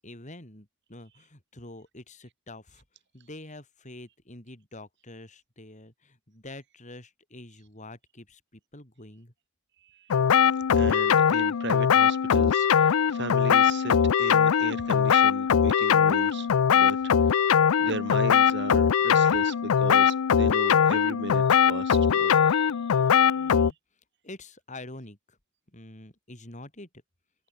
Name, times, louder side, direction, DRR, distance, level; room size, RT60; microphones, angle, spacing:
voice 1, 0.0-2.8 3.1-9.3 23.3-23.7 24.2-25.4 25.7-26.9, left 2 dB, 35° left, 5.0 m, -46 dB
sound 1, 10.1-23.7, left 7 dB, 80° left, 0.5 m, -21 dB
voice 2, 10.7-16.5 16.7-17.4 17.8-23.7, right 2 dB, 55° right, 2.6 m, -37 dB
head